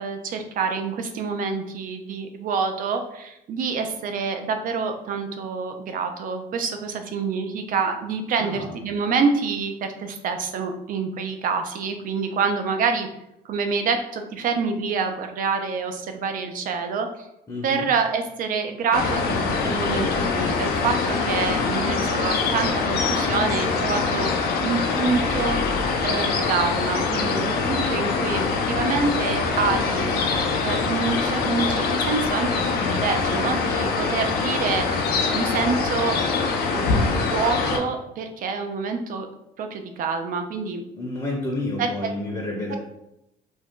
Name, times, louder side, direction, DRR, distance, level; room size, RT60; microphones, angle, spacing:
voice 1, 0.0-13.1 13.4-17.3 17.6-24.4 24.6-30.2 30.6-34.8 35.3-36.2 36.6-39.3 39.6-40.8 41.8-41.9 42.7-42.8, right 5 dB, 55° right, 6 dB, 0.5 m, -27 dB
voice 2, 8.4-8.7 17.5-17.9 41.0-42.8, left 2 dB, 25° left, -3 dB, 0.7 m, -30 dB
sound 1, 18.9-37.8, left 4 dB, 65° left, 0.6 m, -24 dB
2.6 x 2.2 x 3.6 m, 0.85 s
cardioid pair, 110°, 17 cm